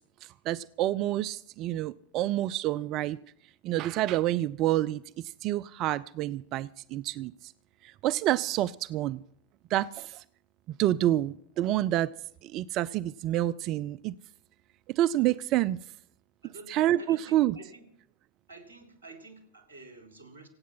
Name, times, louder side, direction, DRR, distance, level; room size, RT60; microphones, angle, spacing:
voice 1, 0.2-3.2 3.6-5.0 5.4-7.5 7.8-9.2 9.7-10.2 10.8-12.1 12.4-14.1 14.9-15.8 16.7-17.6, right 14 dB, 45° right, 18 dB, 0.5 m, -28 dB
voice 2, 16.4-17.9 18.5-20.5, right 2 dB, 85° right, 4 dB, 3.8 m, -49 dB
25.0 x 8.6 x 5.7 m, 0.68 s
hypercardioid pair, 85°, 0 cm